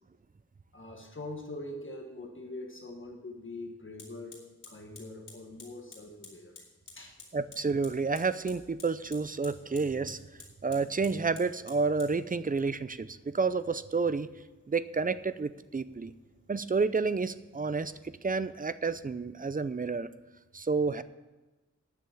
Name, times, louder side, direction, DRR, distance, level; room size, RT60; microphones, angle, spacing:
voice 1, 0.7-4.4 4.7-6.7 6.9-7.2, left 2 dB, 45° left, 1 dB, 1.5 m, -43 dB
Fire, 3.0-3.1 4.0-18.0, left 3 dB, 90° left, 2.7 m, -55 dB
voice 2, 7.3-10.2 10.6-14.3 14.7-16.1 16.5-17.9 18.2-20.1 20.5-21.0, right 4 dB, 30° right, 14 dB, 0.5 m, -30 dB
9.4 x 6.8 x 8.3 m, 1.1 s
wide cardioid pair, 75°, 29 cm